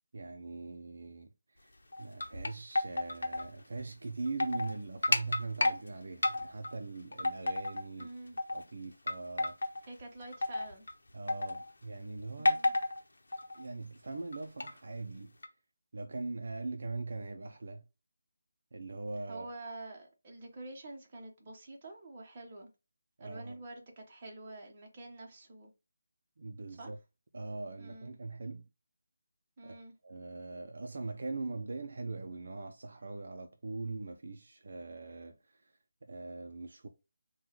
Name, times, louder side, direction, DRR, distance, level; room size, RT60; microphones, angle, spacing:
voice 1, 0.1-1.3 1.6-1.7 2.0-8.1 8.5-9.6 11.1-12.6 13.6-15.3 15.9-17.8 18.7-19.5 23.2-23.6 26.4-27.0 27.3-28.6 29.6-29.8 30.0-35.4 36.0-36.9, right 3 dB, 50° right, 0.5 m, -41 dB
sound 1, 1.9-3.5 3.8-3.9 4.3-4.7 5.0-5.8 6.2-6.7 7.1-8.0 8.4-8.6 9.1-9.8 10.3-10.9 11.3-11.7 12.5-13.0 13.3-13.6 14.3-14.7 15.4-15.5, left 2 dB, 90° left, 0.8 m, -31 dB
voice 2, 8.0-8.4 9.9-10.9 12.4-12.8 19.3-22.7 23.2-25.7 26.7-26.9 27.8-28.2 29.6-29.9, right 2 dB, 20° right, 0.9 m, -47 dB
3.8 x 2.3 x 4.5 m
figure-of-eight pair, 180°, 0 cm